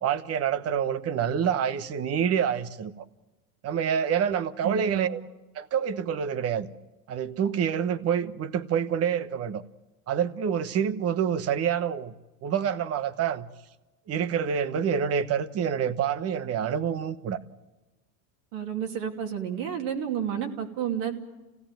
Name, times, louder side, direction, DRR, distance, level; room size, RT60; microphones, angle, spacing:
voice 1, 0.0-3.0 3.6-5.2 5.5-6.7 7.1-9.6 10.1-12.1 12.4-13.5 14.1-17.4, right 8 dB, 35° right, 1.2 m, -27 dB
voice 2, 4.6-5.1 18.5-21.2, right 8 dB, 65° right, 2.8 m, -31 dB
27.0 x 17.0 x 9.2 m
supercardioid pair, 130°, 42 cm